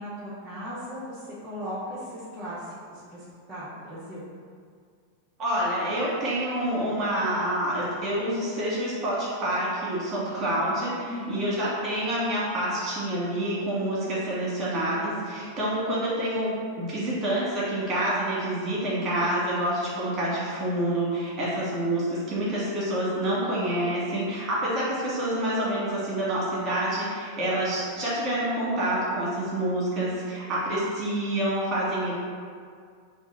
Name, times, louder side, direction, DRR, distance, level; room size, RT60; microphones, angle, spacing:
voice 1, 0.0-4.2 11.1-11.5, equal, 10° right, -10 dB, 1.0 m, -37 dB
voice 2, 5.4-32.1, right 1 dB, 30° right, -7 dB, 1.4 m, -27 dB
3.5 x 2.4 x 4.3 m, 2.1 s
figure-of-eight pair, 90°, 0 cm